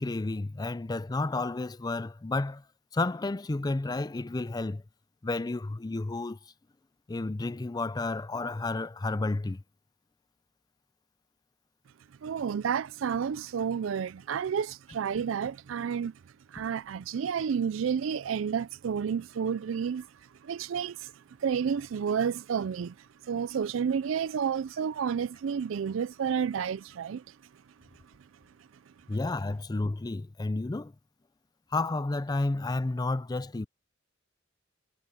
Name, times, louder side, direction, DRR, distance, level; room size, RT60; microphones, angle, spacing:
voice 1, 0.0-2.6 2.9-4.8 5.2-6.4 7.1-9.6 29.1-30.9 31.7-33.7, left 2 dB, 20° left, 0.4 m, -31 dB
voice 2, 12.2-16.1 16.5-20.1 20.4-27.4, right 7 dB, 75° right, 0.4 m, -31 dB
head